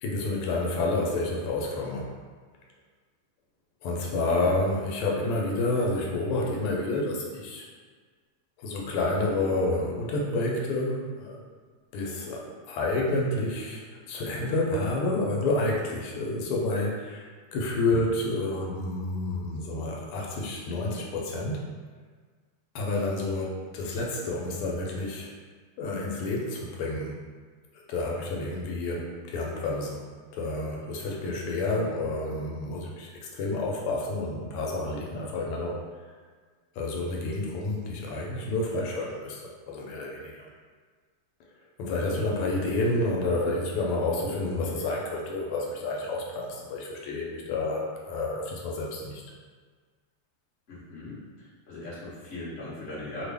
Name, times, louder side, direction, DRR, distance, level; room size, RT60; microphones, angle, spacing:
voice 1, 0.0-2.1 3.8-7.6 8.6-11.4 11.9-13.8 14.1-17.2 17.5-21.6 22.7-25.3 25.8-27.2 27.9-30.0 30.3-35.8 36.7-39.4 39.7-40.5 41.8-49.2, left 2 dB, 85° left, -2 dB, 1.5 m, -29 dB
voice 2, 50.7-51.2 51.7-53.3, left 2 dB, 40° left, -9 dB, 1.1 m, -39 dB
3.5 x 2.2 x 3.3 m, 1.5 s
omnidirectional pair, 2.4 m